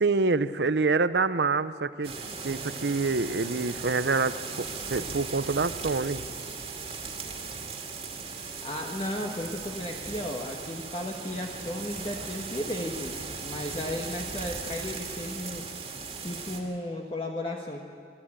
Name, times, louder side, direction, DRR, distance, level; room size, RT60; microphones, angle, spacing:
voice 1, 0.0-2.1 2.4-6.2, right 3 dB, 70° right, 14 dB, 0.7 m, -26 dB
sound 1, 2.0-16.6, right 4 dB, 30° right, 2.2 m, -38 dB
voice 2, 8.3-15.7 16.2-17.8, left 1 dB, 30° left, 0 dB, 1.4 m, -35 dB
24.5 x 13.5 x 8.8 m, 2.2 s
head